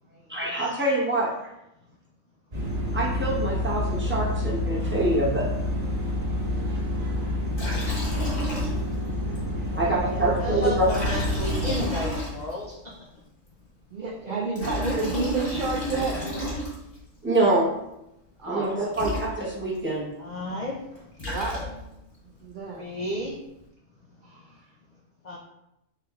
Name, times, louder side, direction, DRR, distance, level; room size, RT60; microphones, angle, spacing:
voice 1, 0.3-1.5 2.9-5.5 9.8-10.8 17.2-17.7 18.4-20.1, right 2 dB, 10° right, -6 dB, 0.7 m, -25 dB
sound 1, 2.5-11.8, left 1 dB, 45° right, 1.4 m, -28 dB
Liquid, 7.5-9.1 9.3-9.4 10.8-12.7 14.3-17.0 18.6-18.7 18.9-19.8 20.9-22.0, left 1 dB, 40° left, 1.2 m, -32 dB
voice 2, 9.7-12.9 14.3-15.0 20.2-20.8 22.7-23.4 25.2-25.4, left 1 dB, 60° left, -3 dB, 0.4 m, -33 dB
voice 3, 13.9-16.7 18.4-18.9 21.2-21.7 22.4-22.8 24.2-24.4, right 4 dB, 75° right, -2 dB, 0.4 m, -31 dB
4.6 x 3.3 x 2.3 m, 0.86 s
omnidirectional pair, 1.4 m